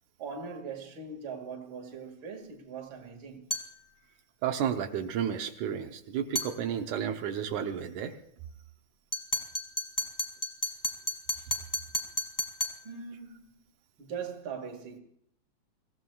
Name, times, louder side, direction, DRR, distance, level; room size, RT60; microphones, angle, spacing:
voice 1, 0.2-3.5 12.8-13.6 14.0-15.0, right 5 dB, 45° right, 2.5 m, -41 dB
sound 1, 3.5-3.8 6.3-6.6 9.1-12.8, equal, 10° left, 1.1 m, -33 dB
voice 2, 4.4-8.1, right 8 dB, 85° right, 2.4 m, -32 dB
25.0 x 16.0 x 2.3 m
omnidirectional pair, 3.4 m